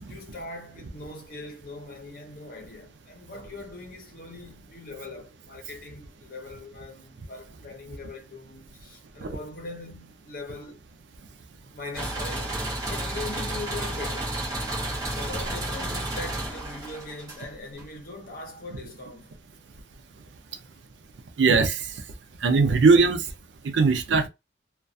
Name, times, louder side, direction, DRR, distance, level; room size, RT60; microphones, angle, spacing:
voice 1, 0.0-10.8 11.7-12.5 12.9-14.4 15.1-19.3, left 2 dB, 50° left, 0.8 m, -41 dB
sound 1, 11.9-17.8, right 1 dB, 20° right, 0.7 m, -31 dB
voice 2, 21.4-21.8 22.4-23.2 23.6-24.3, right 4 dB, 85° right, 0.4 m, -19 dB
2.3 x 2.2 x 2.5 m
head